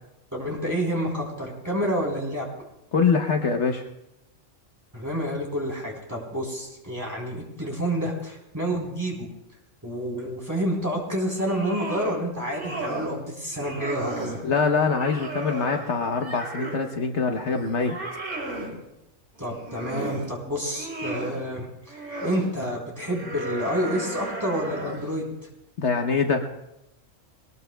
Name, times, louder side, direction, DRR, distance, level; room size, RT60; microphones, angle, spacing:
voice 1, 0.3-2.5 4.9-9.3 9.8-14.4 19.4-25.3, equal, 15° right, -3 dB, 3.7 m, -29 dB
voice 2, 2.9-3.9 14.4-18.0 25.8-26.5, left 5 dB, 60° left, 4 dB, 1.2 m, -24 dB
sound 1, 11.3-12.2 12.5-13.2 13.5-14.4 14.9-16.9 17.3-18.7 19.4-20.3 20.6-21.4 21.9-22.5 23.0-25.1, right 2 dB, 65° right, 3.6 m, -34 dB
22.0 x 19.5 x 2.2 m, 0.91 s
omnidirectional pair, 1.3 m